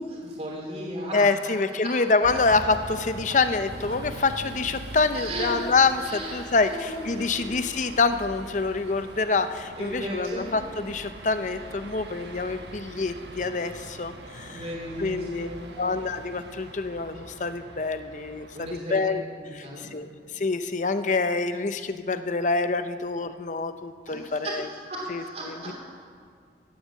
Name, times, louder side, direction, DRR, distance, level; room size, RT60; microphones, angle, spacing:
voice 1, 0.0-1.5 1.8-2.0 3.3-3.4 4.1-4.2 5.1-5.7 5.9-7.5 9.8-10.5 14.4-16.0 18.5-19.0 19.4-19.9 24.1-25.7, right 1 dB, 35° right, -3 dB, 3.1 m, -36 dB
voice 2, 1.1-14.6 15.0-15.5 15.8-19.2 19.5-20.1 20.3-24.7 25.1-25.7, left 3 dB, 45° left, 10 dB, 0.6 m, -26 dB
sound 1, 2.2-18.8, right 2 dB, 75° right, 1.2 m, -42 dB
16.0 x 9.0 x 7.4 m, 2.1 s
head